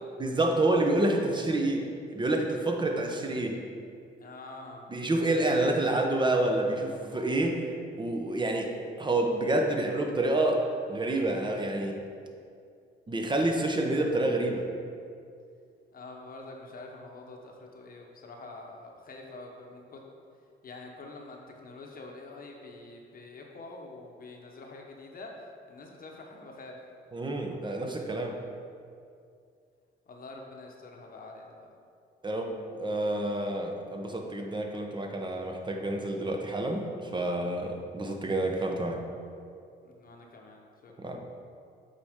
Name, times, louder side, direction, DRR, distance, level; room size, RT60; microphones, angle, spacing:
voice 1, 0.2-3.6 4.9-7.6 8.0-12.0 13.1-14.7 27.1-28.4 32.2-39.0 41.0-41.2, right 2 dB, 25° right, 3 dB, 0.8 m, -28 dB
voice 2, 4.2-4.9 15.9-20.0 20.6-26.8 30.1-31.8 39.8-41.2, left 2 dB, 45° left, 1 dB, 0.9 m, -46 dB
7.7 x 4.2 x 3.6 m, 2.4 s
cardioid pair, 90°, 20 cm